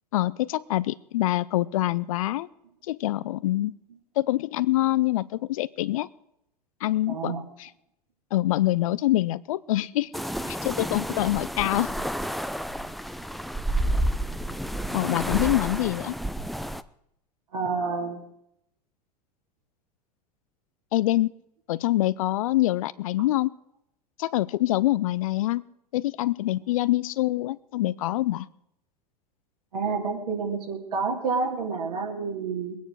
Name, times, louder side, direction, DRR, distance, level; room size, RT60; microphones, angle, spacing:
voice 1, 0.1-2.5 2.9-3.7 4.2-6.1 6.8-7.3 7.6-7.7 8.3-10.1 10.5-11.9 14.9-16.1 20.9-21.3 21.7-23.5 24.2-25.6 25.9-28.5, left 16 dB, 60° left, 18 dB, 0.6 m, -25 dB
voice 2, 7.1-7.4 17.5-18.2 29.7-32.8, right 4 dB, 70° right, -1 dB, 3.1 m, -29 dB
sound 1, 10.1-16.8, right 1 dB, ahead, 0.5 m, -30 dB
23.0 x 9.3 x 4.7 m, 0.76 s
figure-of-eight pair, 85°, 20 cm